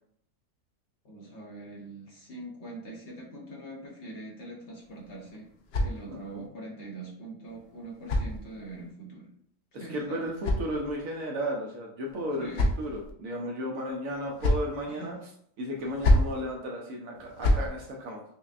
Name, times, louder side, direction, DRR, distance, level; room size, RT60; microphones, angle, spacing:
voice 1, 1.0-5.5 5.8-9.3 9.8-10.2 12.4-12.7 14.9-15.2, right 1 dB, 50° left, -3 dB, 0.9 m, -43 dB
sound 1, 4.8-6.5 7.5-8.9 9.9-11.2 12.1-13.1 14.0-14.8 15.8-16.4 17.1-17.7, left 1 dB, 85° left, 0.5 m, -29 dB
voice 2, 6.1-6.5 9.7-12.5 12.8-15.2 15.6-18.2, equal, 65° right, 0 dB, 0.9 m, -34 dB
5.7 x 2.1 x 2.4 m, 0.67 s
omnidirectional pair, 1.8 m